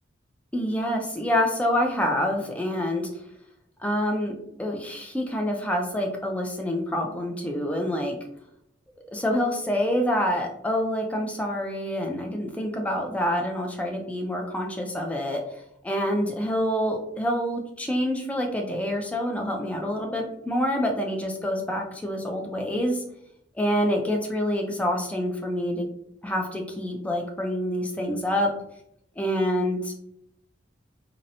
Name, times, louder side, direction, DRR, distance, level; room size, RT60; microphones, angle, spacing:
voice 1, 0.5-3.1 3.8-8.2 9.1-15.4 15.8-23.0 23.6-25.9 26.2-28.5 29.2-30.0, equal, 5° left, 2 dB, 0.3 m, -27 dB
2.7 x 2.0 x 2.6 m, 0.76 s
head